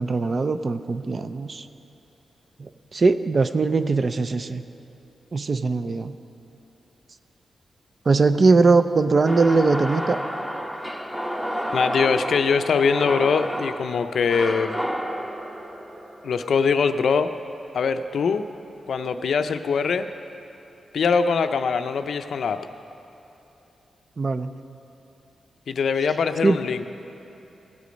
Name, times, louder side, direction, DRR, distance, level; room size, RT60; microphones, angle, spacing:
voice 1, 0.0-1.7 2.6-4.6 5.3-6.1 8.1-10.2 24.2-24.5 26.4-26.6, right 3 dB, 45° right, 11 dB, 0.5 m, -21 dB
sound 1, 9.2-17.4, equal, 10° right, 1.0 m, -31 dB
voice 2, 11.7-14.7 16.2-17.3 17.7-18.5 18.9-20.1 20.9-22.6 25.7-26.9, left 5 dB, 75° left, 9 dB, 0.5 m, -22 dB
16.0 x 8.3 x 5.1 m, 2.9 s
cardioid pair, 85°, 0 cm